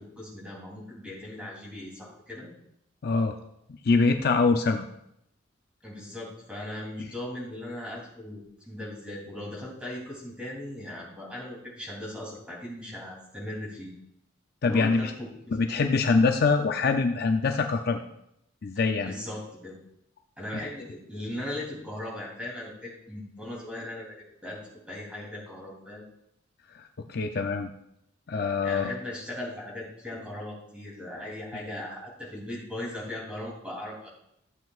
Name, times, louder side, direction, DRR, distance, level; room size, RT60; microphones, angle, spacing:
voice 1, 0.0-2.5 5.8-13.9 14.6-15.7 18.7-19.8 20.4-24.1 24.4-24.6 24.9-26.0 28.6-34.1, left 1 dB, 5° right, -4 dB, 2.9 m, -38 dB
voice 2, 3.0-3.4 3.8-4.8 14.6-15.1 15.5-18.0 18.6-19.1 27.0-27.7 28.3-28.9, left 4 dB, 50° left, 5 dB, 0.5 m, -24 dB
13.0 x 7.9 x 2.4 m, 0.78 s
head